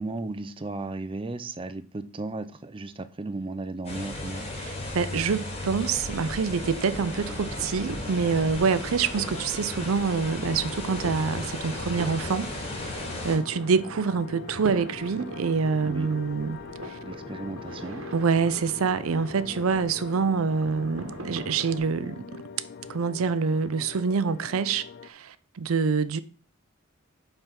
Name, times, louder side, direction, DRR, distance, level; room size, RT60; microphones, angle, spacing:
voice 1, 0.0-4.5 15.8-16.1 17.0-18.0, right 2 dB, 25° right, 0.5 m, -35 dB
sound 1, 3.8-13.4, left 2 dB, 30° left, 2.0 m, -35 dB
voice 2, 4.6-12.5 12.8-17.0 18.1-22.4 22.9-26.2, right 5 dB, 90° right, 0.5 m, -26 dB
sound 2, 6.8-21.8, right 1 dB, 70° right, 1.2 m, -42 dB
sound 3, 10.4-25.1, left 6 dB, 50° left, 0.3 m, -43 dB
5.5 x 4.6 x 5.7 m
head